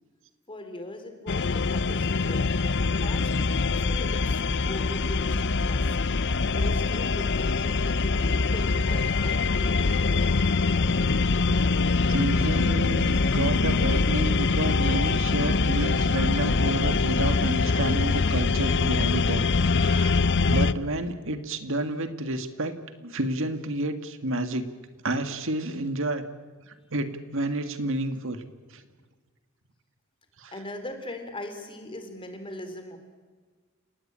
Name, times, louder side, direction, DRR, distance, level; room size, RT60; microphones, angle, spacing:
voice 1, 0.5-2.6 2.9-6.2 6.5-10.6 30.5-33.0, left 1 dB, 25° left, 6 dB, 3.7 m, -40 dB
sound 1, 1.3-20.7, left 4 dB, 55° left, 0.7 m, -24 dB
voice 2, 12.1-22.8 23.0-24.7 25.0-26.2 26.7-28.4 28.7-28.8 30.4-30.5, right 1 dB, 65° right, 8 dB, 2.0 m, -30 dB
29.5 x 18.0 x 8.8 m, 1.4 s
head